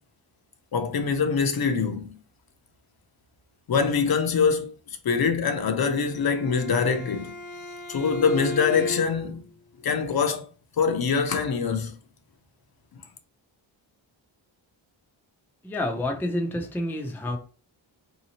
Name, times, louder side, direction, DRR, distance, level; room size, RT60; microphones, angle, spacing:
voice 1, 0.7-2.1 3.7-4.7 5.0-7.3 7.9-9.5 9.8-10.5 10.8-11.9, left 5 dB, 50° left, 0.6 m, -24 dB
Bowed string instrument, 6.0-9.4, left 2 dB, 80° left, 0.9 m, -36 dB
voice 2, 15.6-17.4, left 1 dB, 5° left, 0.4 m, -28 dB
3.9 x 2.8 x 2.8 m
wide cardioid pair, 130°, 47 cm